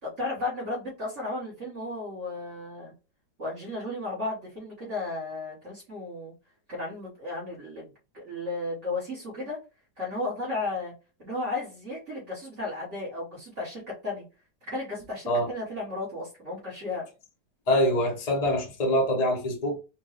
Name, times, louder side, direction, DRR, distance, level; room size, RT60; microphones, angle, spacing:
voice 1, 0.0-2.9 3.4-6.3 6.7-7.9 8.1-9.6 10.0-10.9 11.2-14.2 14.6-17.1, left 2 dB, 50° right, 1.8 m, -34 dB
voice 2, 17.7-19.8, equal, 30° left, 0.9 m, -24 dB
4.4 x 2.3 x 3.1 m
omnidirectional pair, 1.7 m